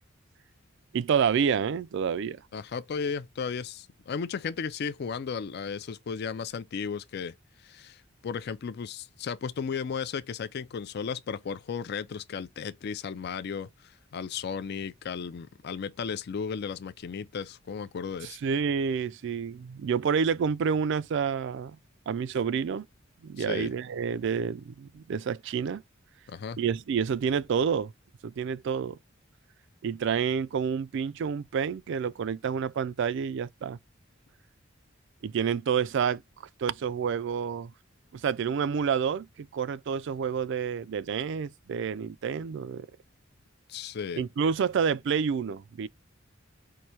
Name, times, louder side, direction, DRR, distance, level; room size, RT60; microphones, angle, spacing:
voice 1, 0.9-2.4 18.4-21.8 22.1-22.9 23.2-25.8 26.6-27.9 28.2-29.0 29.8-33.8 35.2-36.2 36.6-37.7 38.2-42.9 44.2-45.9, right 6 dB, 65° right, 0.3 m, -28 dB
voice 2, 2.5-18.4 23.4-23.7 26.3-26.6 43.7-44.2, left 6 dB, 55° left, 0.4 m, -35 dB
4.6 x 2.6 x 4.2 m
head